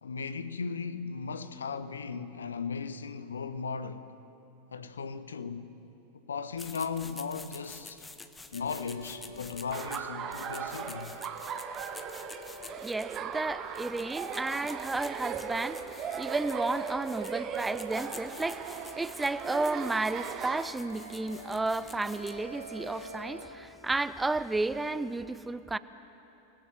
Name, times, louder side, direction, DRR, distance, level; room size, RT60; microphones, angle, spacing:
voice 1, 0.0-4.1 4.7-5.7 6.3-8.0 8.5-11.1, left 5 dB, 70° left, 1.0 m, -37 dB
sound 1, 6.5-23.2, left 3 dB, 10° left, 1.3 m, -49 dB
sound 2, 8.5-23.5, right 1 dB, 80° right, 3.8 m, -48 dB
Laughter, 9.7-20.6, right 7 dB, 30° right, 1.3 m, -38 dB
voice 2, 12.8-25.8, right 2 dB, 10° right, 0.6 m, -32 dB
28.5 x 19.5 x 7.6 m
figure-of-eight pair, 90°, 0 cm